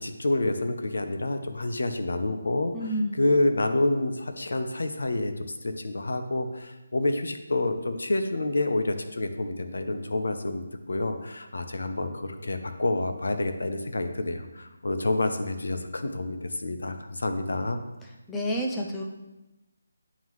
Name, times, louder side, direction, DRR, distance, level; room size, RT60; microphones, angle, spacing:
voice 1, 0.0-2.7 3.2-5.3 5.6-17.8, left 2 dB, 80° left, 7 dB, 0.7 m, -28 dB
voice 2, 2.7-3.2 18.3-19.0, equal, 5° left, -1 dB, 0.3 m, -29 dB
9.2 x 3.7 x 3.1 m, 1.0 s
hypercardioid pair, 180°, 0 cm